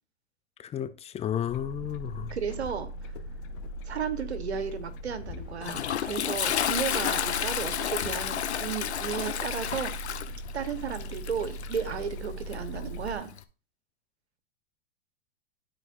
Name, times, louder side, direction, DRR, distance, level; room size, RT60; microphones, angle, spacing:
voice 1, 0.6-2.3, left 10 dB, 20° left, 0.5 m, -32 dB
sound 1, 1.5-13.2, equal, 55° left, 0.9 m, -40 dB
voice 2, 2.3-3.1 3.8-9.9 10.5-13.3, right 7 dB, 85° right, 1.2 m, -34 dB
Toilet flush, 5.1-13.4, left 9 dB, 85° left, 0.8 m, -32 dB
12.5 x 4.6 x 2.6 m
hypercardioid pair, 105°, 32 cm